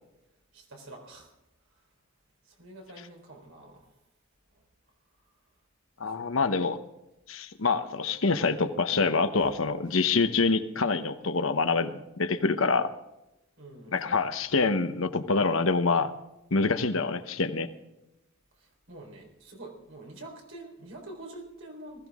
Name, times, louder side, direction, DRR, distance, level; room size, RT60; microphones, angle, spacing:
voice 1, 0.5-1.3 2.5-3.8 6.1-6.5 9.4-9.5 9.8-9.9 13.6-14.2 18.6-22.1, right 2 dB, 85° right, 0 dB, 4.2 m, -47 dB
voice 2, 6.0-6.8 7.3-12.9 13.9-16.1 16.5-17.7, left 4 dB, 80° left, 9 dB, 1.0 m, -26 dB
19.5 x 15.0 x 3.7 m, 0.92 s
head